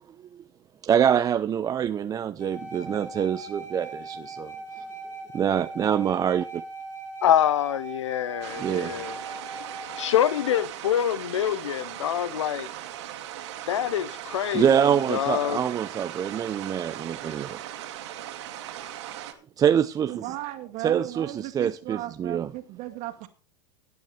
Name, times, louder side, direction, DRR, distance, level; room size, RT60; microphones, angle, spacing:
voice 1, 0.8-4.5 5.3-6.6 8.6-9.0 14.5-17.6 19.6-20.3 20.8-22.5, right 8 dB, 25° right, 0.5 m, -25 dB
sound 1, 2.4-10.7, right 2 dB, 15° left, 7.6 m, -40 dB
voice 2, 7.2-9.2 10.0-12.7 13.7-14.7 15.1-15.6, left 10 dB, 85° left, 0.7 m, -25 dB
sound 2, 8.4-19.3, right 12 dB, 70° right, 2.1 m, -38 dB
voice 3, 20.1-23.3, right 16 dB, 50° right, 2.1 m, -36 dB
17.0 x 9.4 x 3.2 m
hypercardioid pair, 105°, 15 cm